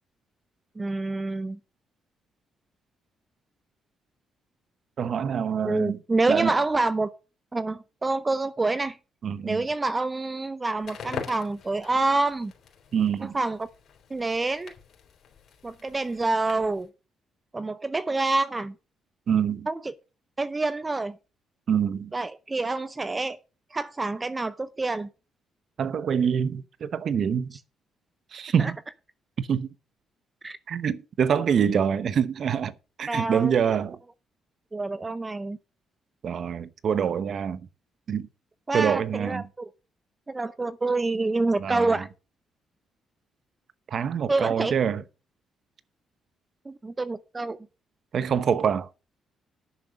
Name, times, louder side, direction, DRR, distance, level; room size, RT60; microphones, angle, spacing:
voice 1, 0.8-1.6 5.6-7.1 7.5-9.0 9.4-12.5 13.2-13.7 14.1-14.7 15.6-16.9 17.5-18.7 19.7-19.9 20.4-21.1 22.1-23.4 23.7-25.1 28.6-28.7 30.4-30.6 33.1-33.5 34.7-35.6 38.7-39.7 40.3-42.1 44.3-44.7 46.7-47.6, right 3 dB, 20° right, 0.6 m, -27 dB
voice 2, 5.0-6.0 6.3-6.6 9.2-9.6 12.9-13.4 19.3-19.7 21.7-22.1 25.8-27.5 28.3-28.8 29.4-29.7 30.7-32.7 33.0-34.0 36.2-37.6 38.1-38.3 38.7-39.4 41.6-42.0 43.9-45.0 48.1-48.9, right 7 dB, 55° right, 0.9 m, -25 dB
Crackle, 10.7-16.9, left 7 dB, 60° left, 4.0 m, -43 dB
10.5 x 6.8 x 6.2 m
cardioid pair, 90°, 0 cm